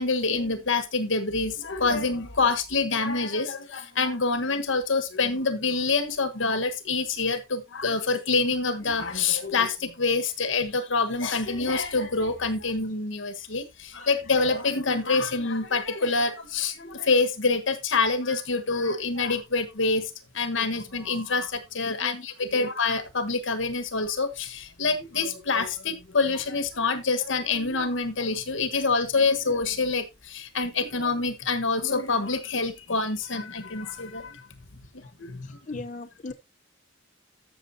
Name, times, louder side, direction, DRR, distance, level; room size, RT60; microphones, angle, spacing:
voice 1, 0.0-34.4 35.2-35.8, left 4 dB, 80° left, 1.4 m, -26 dB
voice 2, 35.4-36.3, left 3 dB, 40° left, 0.6 m, -38 dB
13.5 x 6.4 x 2.7 m
head